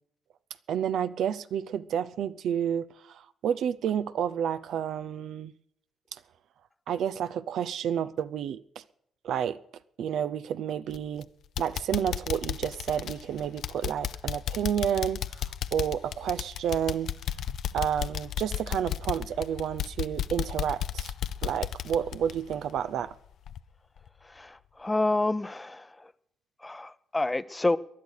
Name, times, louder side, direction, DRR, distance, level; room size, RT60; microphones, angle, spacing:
voice 1, 0.7-5.5 6.9-8.8 9.2-9.6 10.0-11.3 11.6-15.4 15.7-17.1 17.7-21.1 21.4-23.1, right 9 dB, 75° right, 0.6 m, -30 dB
sound 1, 10.9-11.2 11.6-23.1 23.5-23.6 24.1-24.2, left 10 dB, 70° left, 0.6 m, -34 dB
voice 2, 24.2-26.1 26.6-27.8, left 2 dB, 15° left, 0.7 m, -29 dB
19.0 x 11.0 x 6.6 m
cardioid pair, 90°, 0 cm